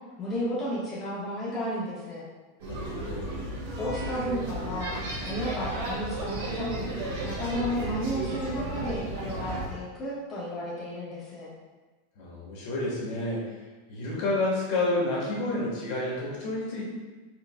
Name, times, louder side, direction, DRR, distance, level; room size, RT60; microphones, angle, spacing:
voice 1, 0.2-2.2 3.8-4.9 5.2-6.9 7.2-11.5, equal, 15° left, -10 dB, 1.4 m, -33 dB
voice 2, 2.6-3.4 12.2-13.6 13.9-16.8, left 2 dB, 55° left, -5 dB, 1.5 m, -30 dB
sound 1, 2.6-9.7, right 2 dB, 65° right, 1.2 m, -34 dB
4.6 x 4.4 x 2.3 m, 1.3 s
supercardioid pair, 160°, 0 cm